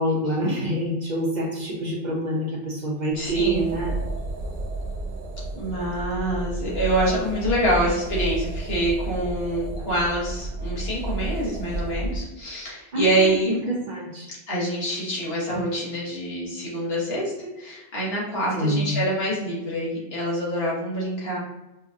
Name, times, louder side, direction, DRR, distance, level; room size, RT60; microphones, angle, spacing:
voice 1, 0.0-3.9 12.9-13.3 13.7-14.3 18.5-18.9, right 1 dB, 50° right, -2 dB, 0.7 m, -26 dB
voice 2, 3.1-3.6 5.5-13.6 14.5-21.4, right 1 dB, 70° left, -5 dB, 1.4 m, -26 dB
sound 1, 3.1-12.2, right 2 dB, 85° right, 0.9 m, -31 dB
4.3 x 2.4 x 2.6 m, 0.99 s
omnidirectional pair, 1.1 m